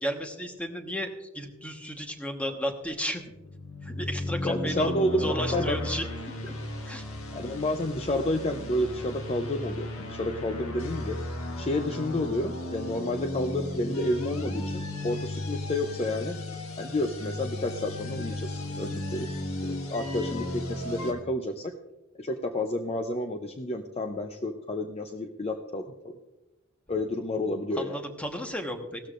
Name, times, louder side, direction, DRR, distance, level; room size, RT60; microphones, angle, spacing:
voice 1, 0.0-3.2 3.8-4.9 5.2-6.1 6.4-6.5 6.8-7.0 27.8-29.0, equal, 5° left, 4 dB, 1.2 m, -33 dB
sound 1, 3.3-21.1, left 1 dB, 85° left, 1.5 m, -35 dB
voice 2, 4.4-5.8 7.3-11.2 11.6-16.4 16.8-19.3 19.6-21.7 22.2-26.2 26.9-28.0, left 1 dB, 30° left, 6 dB, 0.6 m, -30 dB
17.0 x 13.0 x 2.5 m, 1.0 s
head